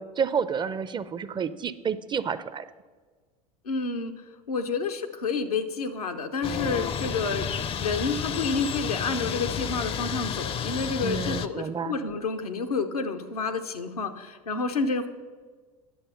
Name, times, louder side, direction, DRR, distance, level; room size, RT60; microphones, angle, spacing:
voice 1, 0.0-2.6 11.0-12.0, right 6 dB, 25° right, 14 dB, 0.5 m, -30 dB
voice 2, 3.7-4.1 4.5-7.5 7.8-15.1, left 4 dB, 90° left, 6 dB, 0.8 m, -29 dB
sound 1, 6.4-11.5, left 7 dB, 30° left, 0.5 m, -31 dB
10.5 x 6.8 x 5.5 m, 1.5 s
hypercardioid pair, 80°, 19 cm